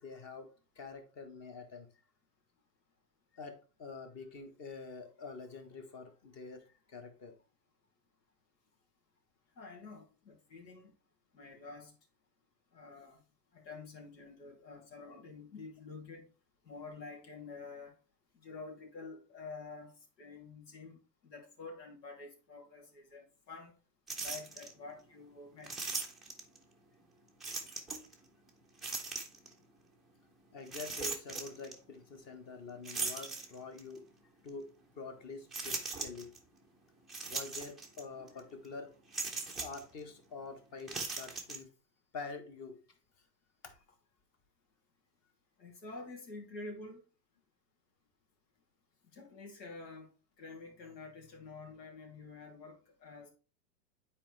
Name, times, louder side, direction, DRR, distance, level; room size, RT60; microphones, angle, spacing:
voice 1, 0.0-1.9 3.3-7.4 30.5-34.1 34.4-36.3 37.3-39.0 39.4-41.7 42.1-42.8 43.6-43.8, left 4 dB, 30° left, 1.3 m, -47 dB
voice 2, 9.6-10.9 11.3-11.9 12.7-13.2 13.5-16.3 16.6-17.9 18.3-23.7 24.2-26.0 45.6-47.0 49.1-50.1 50.4-53.3, left 3 dB, 80° left, 2.9 m, -49 dB
sound 1, 24.1-24.7 25.6-26.6 27.4-28.1 28.8-29.5 30.7-31.7 32.8-33.9 34.5-34.6 35.5-36.4 37.1-38.0 38.3-38.4 39.1-39.8 40.8-41.6, right 4 dB, ahead, 0.5 m, -39 dB
8.9 x 4.4 x 3.2 m
hypercardioid pair, 135°, 50 cm